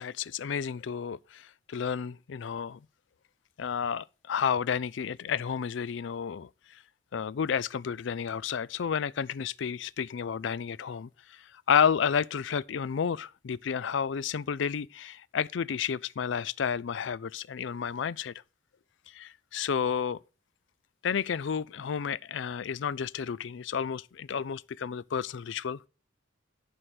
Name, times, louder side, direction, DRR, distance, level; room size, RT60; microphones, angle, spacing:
voice 1, 0.0-2.8 3.6-6.8 7.1-18.3 19.1-20.2 21.0-25.8, left 7 dB, 70° left, 0.4 m, -31 dB
11.0 x 4.8 x 5.8 m
head